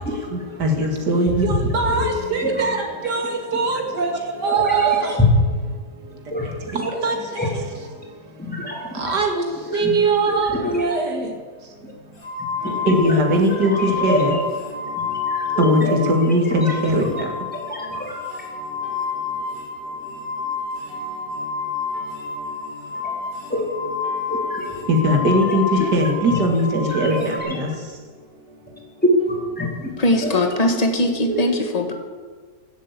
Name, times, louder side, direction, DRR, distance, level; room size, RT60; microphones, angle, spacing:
voice 1, 0.6-5.1 6.7-7.2 9.0-9.4 9.7-11.3 12.9-14.4 15.6-17.1 24.9-25.6 25.9-27.7, right 1 dB, 70° right, 3 dB, 2.7 m, -20 dB
voice 2, 1.8-2.7 4.4-5.2 6.3-6.5 6.9-7.0 7.4-7.5 8.4-9.1 9.7-9.9 10.2-10.9 11.8-11.9 12.6-13.2 13.5-14.4 15.3-16.0 16.2-16.9 17.1-17.2 17.7-18.2 23.5-23.6 24.3-24.7 25.8-26.4 26.8-27.6 29.3-29.9 30.2-30.3 31.2-31.4, left 1 dB, 5° left, -2 dB, 3.2 m, -27 dB
sound 1, 12.2-16.2 16.5-27.4, left 4 dB, 50° left, 4.0 m, -29 dB
voice 3, 30.0-31.9, left 1 dB, 25° left, 5 dB, 1.6 m, -20 dB
16.0 x 8.0 x 8.3 m, 1.5 s
omnidirectional pair, 1.8 m